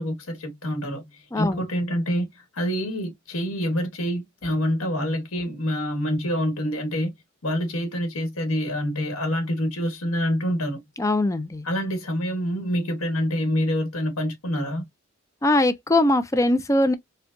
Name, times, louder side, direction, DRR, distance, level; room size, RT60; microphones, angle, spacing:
voice 1, 0.0-7.1 7.4-10.8 11.6-14.8, equal, 75° left, 1.2 m, -26 dB
voice 2, 1.3-1.6 11.0-11.7 15.4-16.9, left 1 dB, 15° left, 0.4 m, -21 dB
4.4 x 2.2 x 2.5 m
head